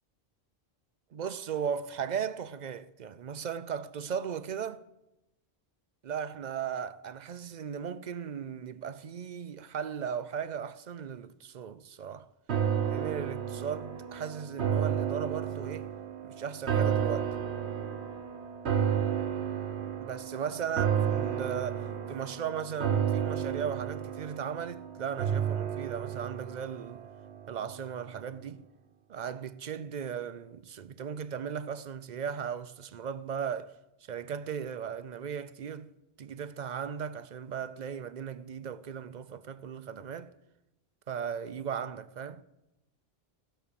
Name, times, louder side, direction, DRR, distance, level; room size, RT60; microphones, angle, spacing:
voice 1, 1.1-4.8 6.0-12.3 12.9-15.9 16.2-17.3 20.0-27.0 27.5-28.6 29.1-33.8 34.1-40.3 41.1-42.4, right 7 dB, 55° right, 0.6 m, -37 dB
sound 1, 12.5-27.8 28.2-28.3, right 8 dB, 90° right, 1.3 m, -32 dB
17.0 x 6.4 x 6.9 m
omnidirectional pair, 1.1 m